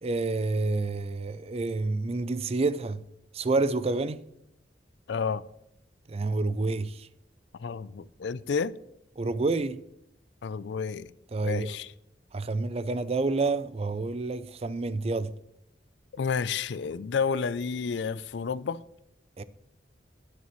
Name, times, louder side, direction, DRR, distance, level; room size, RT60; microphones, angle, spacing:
voice 1, 0.0-3.0 3.3-4.2 6.1-7.1 9.2-9.8 11.3-11.8 12.3-15.3 19.4-19.5, right 3 dB, 35° right, 0.4 m, -28 dB
voice 2, 5.1-5.4 7.5-8.7 10.4-11.1 11.4-11.9 16.1-18.8, left 5 dB, 70° left, 0.4 m, -30 dB
12.5 x 9.7 x 3.1 m
head